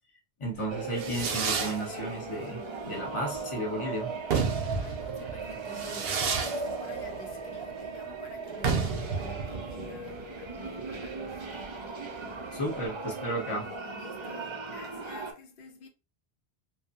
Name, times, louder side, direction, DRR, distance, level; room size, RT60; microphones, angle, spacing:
voice 1, 0.4-4.2 12.5-13.7, right 1 dB, 30° left, 0.9 m, -33 dB
Fireworks, 0.6-12.8, right 5 dB, 70° right, 0.8 m, -33 dB
sound 1, 0.7-15.3, right 4 dB, 45° right, 0.4 m, -38 dB
voice 2, 4.7-11.5 13.9-15.9, left 4 dB, 65° left, 0.7 m, -49 dB
2.6 x 2.3 x 2.7 m
omnidirectional pair, 1.1 m